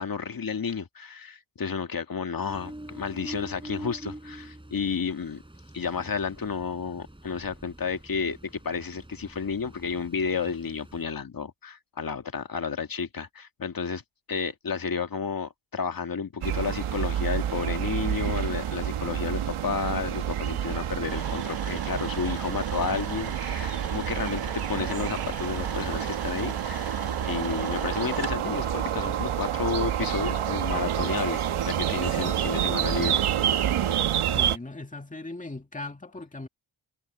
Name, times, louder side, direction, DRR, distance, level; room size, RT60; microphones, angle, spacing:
voice 1, 0.0-5.4 5.7-14.0 14.3-33.2 33.9-34.1, left 5 dB, 45° left, 1.9 m, -31 dB
Ocean, 2.5-11.1, right 1 dB, 10° right, 4.6 m, -45 dB
sound 1, 16.4-34.6, right 10 dB, 80° right, 1.4 m, -28 dB
sound 2, 21.1-28.4, right 6 dB, 45° right, 2.4 m, -38 dB
voice 2, 34.3-36.5, left 2 dB, 15° left, 2.2 m, -38 dB
cardioid pair, 65°, 50 cm